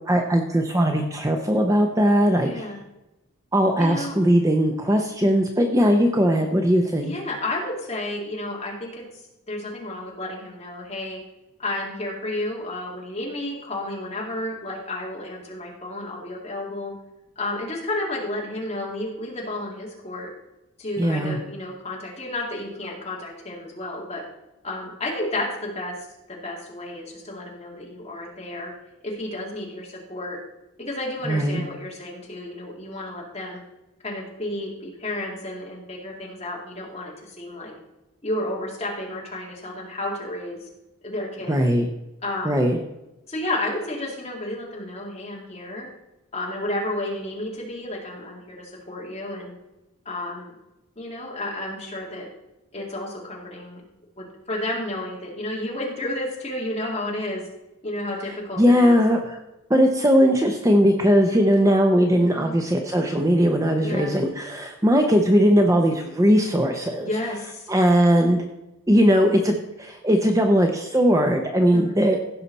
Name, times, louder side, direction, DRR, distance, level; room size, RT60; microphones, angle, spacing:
voice 1, 0.1-2.6 3.5-7.1 21.0-21.4 31.2-31.6 41.5-41.9 42.4-42.8 58.6-59.4 59.7-67.1 67.7-68.4 68.9-72.2, equal, 15° right, 3 dB, 0.6 m, -19 dB
voice 2, 2.4-2.8 3.8-4.1 7.0-11.2 11.6-16.9 17.4-20.3 20.8-24.2 24.6-26.0 26.3-28.7 29.0-30.4 30.8-33.6 34.0-37.7 38.2-40.7 41.0-41.6 42.2-42.7 43.3-45.9 46.3-49.5 50.1-50.5 51.0-52.3 52.7-53.8 54.2-57.5 57.8-59.0 62.2-62.6 63.8-64.2 67.0-67.7 71.7-72.0, left 1 dB, 30° left, -3 dB, 2.3 m, -31 dB
15.5 x 5.7 x 4.1 m, 0.96 s
head